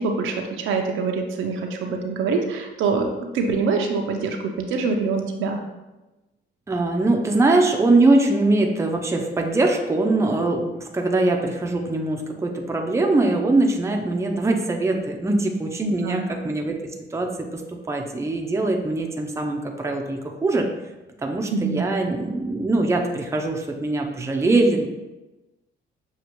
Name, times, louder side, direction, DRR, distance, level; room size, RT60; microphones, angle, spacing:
voice 1, 0.0-5.6 15.8-16.3 21.5-21.8, right 4 dB, 80° right, 3 dB, 0.6 m, -25 dB
voice 2, 6.7-16.8 17.1-20.7 21.2-24.9, right 2 dB, 15° right, 1 dB, 0.5 m, -22 dB
6.6 x 2.4 x 3.0 m, 1.1 s
cardioid pair, 90°, 20 cm